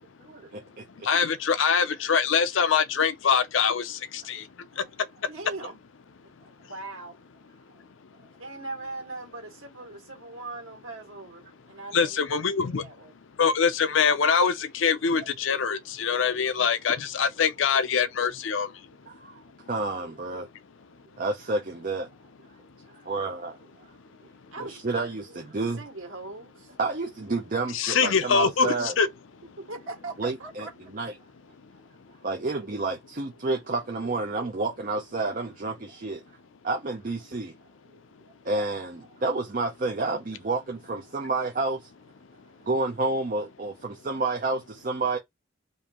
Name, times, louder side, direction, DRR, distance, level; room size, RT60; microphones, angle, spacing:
voice 1, 0.2-1.1 19.1-19.4 19.7-20.5 21.2-22.1 22.9-24.0 24.6-25.8 26.8-28.9 30.2-31.2 32.2-36.2 36.6-37.5 38.4-41.9 42.6-45.2, right 3 dB, 40° right, 0.6 m, -30 dB
voice 2, 1.0-4.4 11.9-12.8 13.4-18.7 27.7-29.1, left 6 dB, 75° left, 0.5 m, -24 dB
voice 3, 5.3-5.8 6.4-7.1 8.4-13.1 24.5-25.0 25.8-26.7 29.7-30.9, right 2 dB, 85° right, 1.8 m, -40 dB
5.3 x 2.6 x 3.0 m
head